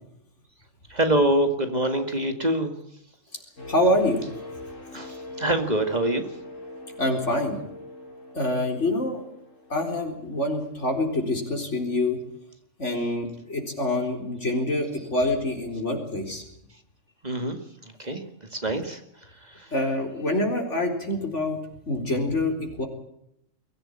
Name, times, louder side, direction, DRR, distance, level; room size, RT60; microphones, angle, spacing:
voice 1, 0.9-2.7 4.9-6.3 17.2-17.6 18.0-18.2 18.5-19.7, right 1 dB, 35° right, 6 dB, 2.2 m, -25 dB
sound 1, 3.6-11.4 11.8-12.1, left 2 dB, 85° left, 5.7 m, -43 dB
voice 2, 3.7-4.2 7.0-7.6 8.3-9.2 9.7-12.2 12.8-16.4 19.7-21.6 21.9-22.9, left 1 dB, 65° left, 3 dB, 4.5 m, -26 dB
23.0 x 15.5 x 8.9 m, 0.77 s
omnidirectional pair, 1.3 m